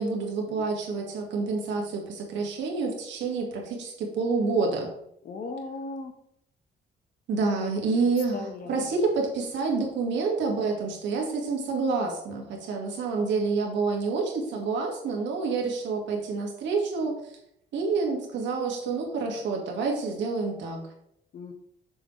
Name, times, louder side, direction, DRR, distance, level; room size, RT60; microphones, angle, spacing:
voice 1, 0.0-4.9 7.3-17.3 17.7-20.8, right 4 dB, 90° right, 1 dB, 1.9 m, -28 dB
voice 2, 5.2-6.1 7.6-7.7 8.3-8.9 21.3-21.5, left 3 dB, 50° left, 6 dB, 1.1 m, -37 dB
7.3 x 6.6 x 3.2 m, 0.76 s
cardioid pair, 135°, 18 cm